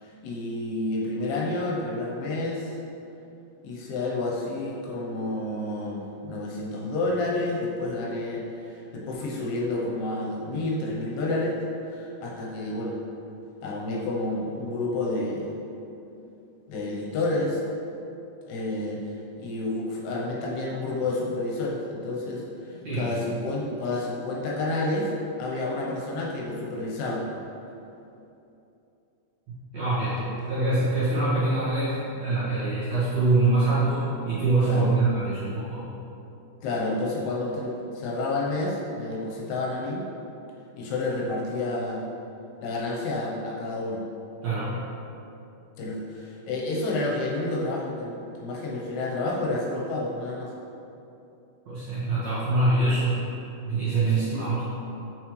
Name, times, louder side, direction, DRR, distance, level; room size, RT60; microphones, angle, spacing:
voice 1, 0.0-2.7 3.6-11.6 11.9-13.0 13.6-15.5 16.7-17.6 18.5-19.0 19.4-22.4 22.7-25.1 25.4-27.3 30.2-30.3 34.6-35.0 36.6-40.0 40.8-42.0 42.6-44.0 45.8-50.5 54.3-54.5, left 2 dB, 75° left, -3 dB, 2.7 m, -30 dB
voice 2, 22.7-23.3 29.5-30.2 30.5-35.9 44.4-44.8 51.7-53.3 53.7-54.6, right 2 dB, 55° right, -12 dB, 2.0 m, -24 dB
7.3 x 6.2 x 3.1 m, 2.8 s
omnidirectional pair, 4.9 m